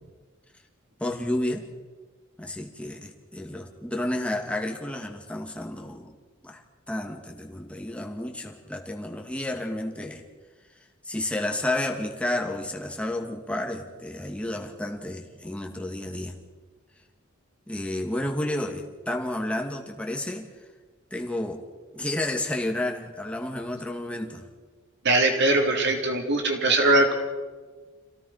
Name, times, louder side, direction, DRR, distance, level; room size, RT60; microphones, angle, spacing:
voice 1, 1.0-1.7 2.4-6.1 6.4-6.6 6.9-10.2 11.0-16.4 17.7-20.5 21.1-21.6 21.9-24.5, left 1 dB, 5° left, 1 dB, 2.4 m, -31 dB
voice 2, 25.0-27.1, right 2 dB, 55° right, 3 dB, 3.8 m, -21 dB
27.5 x 17.0 x 5.9 m, 1.4 s
head